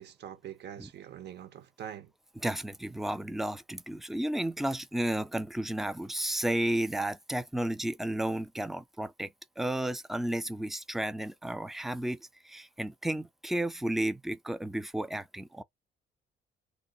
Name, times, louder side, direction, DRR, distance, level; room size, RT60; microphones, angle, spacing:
voice 1, 0.0-2.1, right 10 dB, 60° right, 0.5 m, -44 dB
voice 2, 2.4-15.6, right 1 dB, ahead, 0.3 m, -33 dB
2.1 x 2.0 x 3.6 m
cardioid pair, 90°, 20 cm